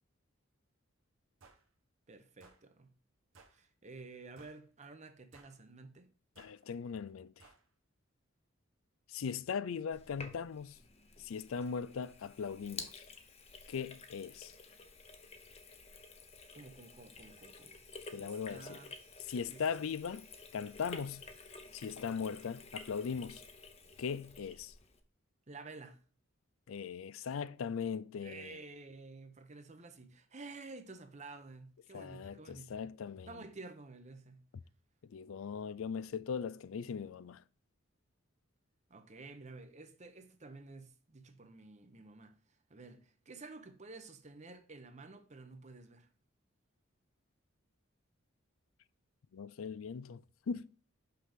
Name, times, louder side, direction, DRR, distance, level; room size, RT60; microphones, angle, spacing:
sound 1, 1.4-1.6 2.4-2.6 3.3-3.6 4.4-4.6 5.3-5.6 6.4-6.6 7.4-7.6, right 4 dB, 80° right, 1.4 m, -60 dB
voice 1, 2.1-2.9 3.5-6.1 16.5-17.8 18.2-18.9 19.5-19.6 25.5-26.0 28.2-32.9 33.3-34.5 38.9-42.3 42.7-46.1, right 3 dB, 35° right, 0.9 m, -51 dB
voice 2, 6.4-7.5 9.1-10.8 11.2-13.0 13.7-14.5 18.1-18.8 19.3-20.3 20.5-21.2 21.7-23.4 24.0-24.7 26.7-28.6 31.9-33.4 34.5-34.6 35.0-37.4 49.3-50.7, left 6 dB, 80° left, 0.4 m, -39 dB
Sink (filling or washing), 9.9-25.0, left 4 dB, 30° left, 0.9 m, -52 dB
5.8 x 5.7 x 3.5 m
head